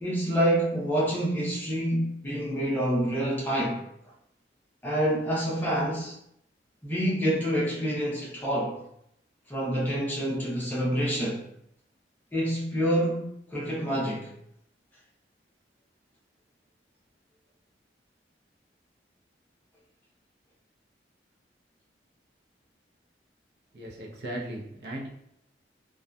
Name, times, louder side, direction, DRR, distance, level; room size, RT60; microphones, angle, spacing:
voice 1, 0.0-3.8 4.8-6.2 6.8-8.8 9.5-11.4 12.3-14.3, equal, 10° left, -5 dB, 0.6 m, -27 dB
voice 2, 23.7-25.1, right 1 dB, 65° right, -2 dB, 0.5 m, -37 dB
2.6 x 2.2 x 2.2 m, 0.74 s
head